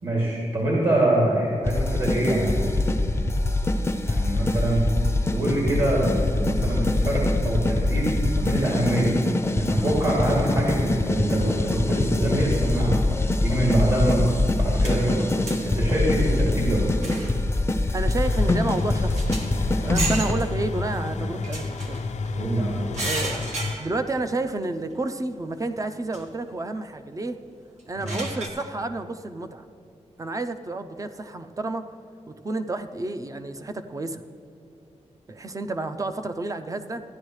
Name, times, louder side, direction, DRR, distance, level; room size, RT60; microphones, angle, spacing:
voice 1, 0.0-2.9 4.0-4.9 5.3-9.2 9.5-15.3 15.6-16.9 21.1-21.3 22.4-22.9 28.0-28.2, right 1 dB, 55° right, -5 dB, 2.5 m, -24 dB
sound 1, 1.6-20.3, left 2 dB, 20° left, 0.5 m, -24 dB
sound 2, 14.8-15.7 16.2-16.3 17.0-17.5 17.9-18.0 18.5-18.6 18.8-19.6 19.9-20.5 21.4-22.3 22.9-24.2 24.6-24.7 26.1-26.2 27.8-28.5, right 2 dB, 75° right, 1.5 m, -33 dB
voice 2, 17.9-19.3 19.8-22.0 23.0-27.4 27.9-29.7 30.2-31.9 32.3-34.2 35.3-37.0, right 2 dB, 30° right, 9 dB, 0.5 m, -30 dB
sound 3, 18.2-23.7, left 3 dB, 80° left, 0.5 m, -31 dB
15.0 x 10.5 x 3.2 m, 2.6 s
wide cardioid pair, 115°, 12 cm